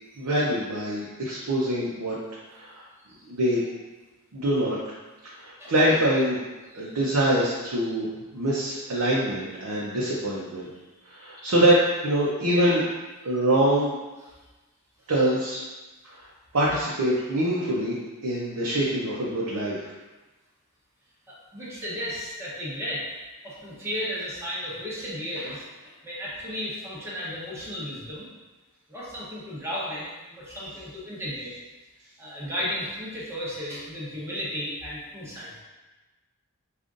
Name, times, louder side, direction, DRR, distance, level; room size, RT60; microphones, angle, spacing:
voice 1, 0.2-2.2 2.5-2.7 3.3-3.6 4.3-4.8 5.4-6.4 6.7-10.7 11.1-12.8 13.2-13.9 15.1-15.6 16.0-16.3 16.5-18.0 18.2-19.9, right 1 dB, 75° right, -6 dB, 0.6 m, -24 dB
voice 2, 21.3-23.0 23.4-28.3 28.9-31.5 32.2-35.5, equal, 10° right, -7 dB, 0.9 m, -34 dB
5.1 x 2.4 x 2.5 m, 1.2 s
head